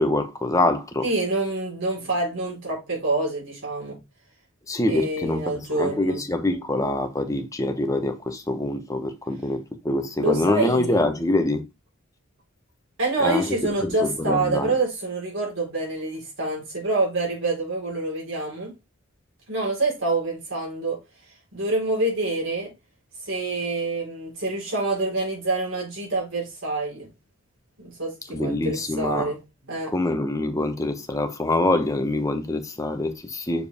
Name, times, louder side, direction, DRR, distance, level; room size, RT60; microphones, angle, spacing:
voice 1, 0.0-1.1 4.7-11.6 13.2-14.7 28.3-29.3 29.9-33.7, left 1 dB, 15° left, 0.9 m, -25 dB
voice 2, 1.0-4.0 4.8-6.2 10.2-11.0 13.0-18.7 19.5-21.0 21.5-22.7 23.2-27.1 27.8-29.4 29.6-29.9, right 2 dB, 65° right, 4.2 m, -26 dB
6.7 x 4.7 x 3.5 m
head